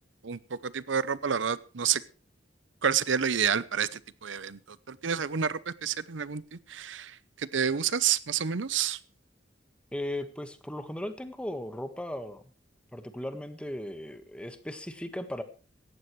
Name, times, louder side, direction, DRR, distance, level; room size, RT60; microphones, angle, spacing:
voice 1, 0.2-2.0 2.8-9.0, right 7 dB, 80° right, 17 dB, 0.7 m, -29 dB
voice 2, 9.9-12.4 12.9-15.4, left 1 dB, 5° left, 8 dB, 1.5 m, -37 dB
17.5 x 14.5 x 3.2 m, 0.34 s
head